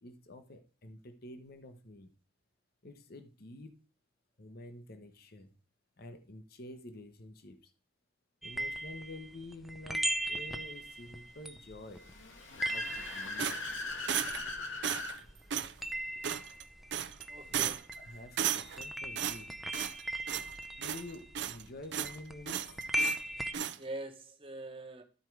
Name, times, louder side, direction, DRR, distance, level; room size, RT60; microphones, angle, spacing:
voice 1, 0.0-2.1 2.8-3.7 4.4-5.5 6.0-7.7 8.4-12.1 12.7-13.6 17.5-19.6 20.8-22.8, left 1 dB, 50° left, 0.9 m, -49 dB
sound 1, 8.4-15.0 15.3-23.5, right 1 dB, ahead, 0.5 m, -39 dB
Car / Accelerating revving vroom, 11.9-15.2, left 3 dB, 85° left, 2.2 m, -39 dB
sound 2, 13.4-14.5 14.8-15.2 15.5-15.7 16.2-16.6 16.9-17.2 17.5-18.0 18.4-18.9 19.2-20.0 20.3-20.5 20.8-21.6 21.9-22.2 22.5-23.2 23.5-23.8, right 9 dB, 60° right, 0.5 m, -35 dB
voice 2, 17.3-17.7 23.8-25.0, right 2 dB, 30° right, 1.1 m, -43 dB
13.0 x 4.5 x 4.6 m
head